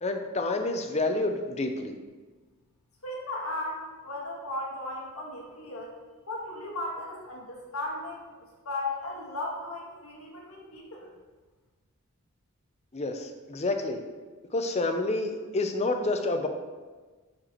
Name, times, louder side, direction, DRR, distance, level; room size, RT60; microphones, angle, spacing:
voice 1, 0.0-2.0 12.9-14.0 14.5-16.5, left 2 dB, 30° left, 6 dB, 0.6 m, -29 dB
voice 2, 3.0-5.9 6.3-8.4 8.6-11.1, left 2 dB, 75° left, -2 dB, 1.5 m, -36 dB
10.0 x 4.4 x 3.0 m, 1.3 s
head